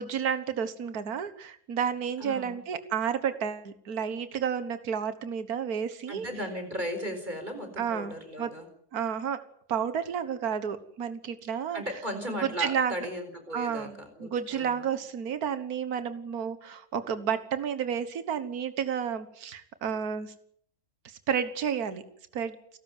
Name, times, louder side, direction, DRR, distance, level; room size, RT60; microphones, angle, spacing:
voice 1, 0.0-6.3 7.8-8.5 8.9-9.4 9.7-11.8 12.6-12.9 13.5-20.3 21.1-22.0 22.3-22.6, right 7 dB, 75° right, 11 dB, 1.9 m, -31 dB
voice 2, 2.2-2.6 6.1-8.7 11.7-14.9, equal, 30° right, 7 dB, 4.7 m, -36 dB
29.5 x 13.0 x 9.3 m, 0.68 s
omnidirectional pair, 1.6 m